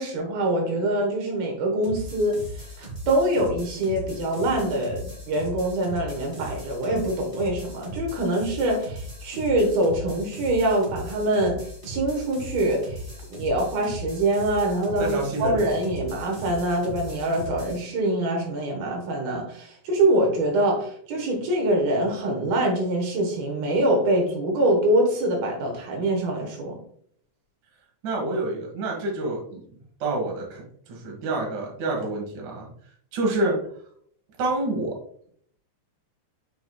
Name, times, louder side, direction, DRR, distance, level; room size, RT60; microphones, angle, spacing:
voice 1, 0.0-13.0 13.3-26.8, right 1 dB, 85° right, 1 dB, 3.2 m, -24 dB
sound 1, 1.8-17.8, equal, 30° right, 1.0 m, -38 dB
voice 2, 15.0-15.8 28.0-29.6 30.0-32.7 33.1-33.6 34.4-35.0, right 2 dB, 60° right, 0 dB, 2.9 m, -27 dB
6.9 x 6.6 x 2.3 m, 0.62 s
omnidirectional pair, 4.2 m